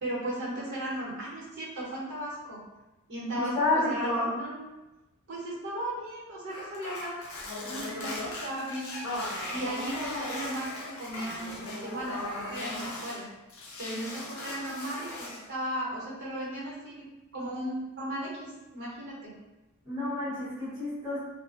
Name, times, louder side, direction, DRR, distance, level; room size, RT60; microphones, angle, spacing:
voice 1, 0.0-2.6 3.1-4.6 5.3-7.2 7.6-8.9 9.5-10.7 11.0-13.3 13.8-17.0 17.3-19.3, right 1 dB, 55° right, -7 dB, 0.9 m, -36 dB
voice 2, 3.4-4.3 19.8-21.2, left 2 dB, 5° right, -16 dB, 1.0 m, -29 dB
sound 1, 6.5-13.2 13.5-15.5, left 2 dB, 70° left, 0.5 m, -38 dB
2.4 x 2.1 x 2.4 m, 1.1 s
head